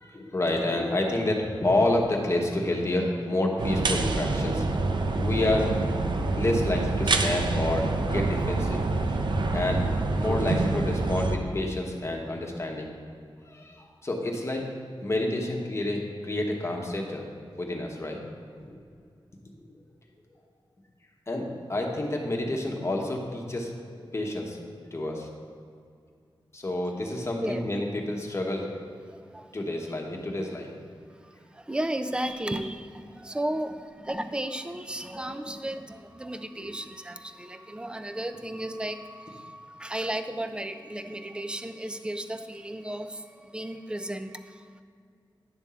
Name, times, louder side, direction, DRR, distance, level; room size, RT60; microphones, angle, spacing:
voice 1, 0.0-4.6 5.2-5.7 6.4-8.8 9.5-9.8 10.1-12.9 13.5-14.7 15.0-17.3 17.6-18.2 18.7-18.8 21.3-23.7 24.0-25.3 26.5-28.7 29.5-30.7 36.6-36.7, left 1 dB, 30° left, 0 dB, 1.1 m, -29 dB
sound 1, 3.6-11.4, right 3 dB, 60° right, 0.6 m, -26 dB
voice 2, 29.0-29.5 31.2-44.8, right 1 dB, 10° right, 9 dB, 0.4 m, -34 dB
10.5 x 3.6 x 6.9 m, 2.3 s
wide cardioid pair, 115°, 9 cm